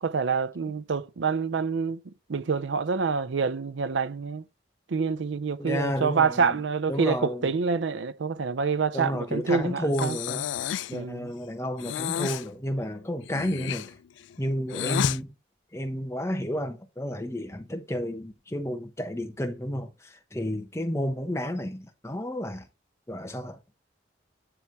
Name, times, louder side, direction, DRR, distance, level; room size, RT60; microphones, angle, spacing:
voice 1, 0.0-4.4 4.9-10.2 10.9-11.3, right 5 dB, 85° right, 0.5 m, -27 dB
voice 2, 5.6-6.6 6.9-7.5 8.9-10.4 10.9-13.9 14.4-15.3 15.7-22.7 23.1-23.8, equal, 15° left, 1.0 m, -31 dB
Breathing, 9.9-11.0 11.8-12.5 13.2-15.2, left 10 dB, 80° left, 0.3 m, -31 dB
10.0 x 3.5 x 4.5 m
head